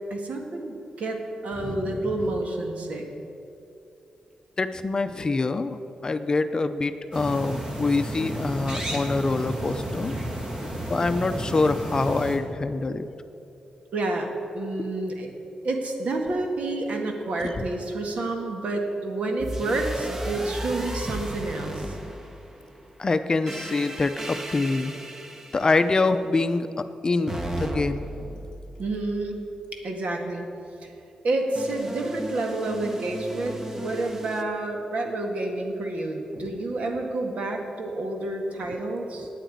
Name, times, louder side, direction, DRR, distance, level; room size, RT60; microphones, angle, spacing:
voice 1, 0.1-3.1 13.9-14.3 14.5-15.3 15.6-22.0 28.8-29.4 29.7-30.4 30.8-30.9 31.2-39.3, right 2 dB, 65° right, 2 dB, 1.9 m, -29 dB
voice 2, 1.6-2.3 4.6-10.1 10.9-13.1 23.0-25.0 25.5-28.4 36.3-36.4, left 3 dB, 35° left, 10 dB, 0.6 m, -25 dB
sound 1, 7.1-12.4, right 1 dB, 40° right, 2.4 m, -32 dB
sound 2, 19.4-22.7 23.5-26.0 27.3-29.4 31.6-34.4, right 1 dB, 20° right, 1.0 m, -35 dB
9.2 x 9.0 x 9.2 m, 2.7 s
cardioid pair, 100°, 2 cm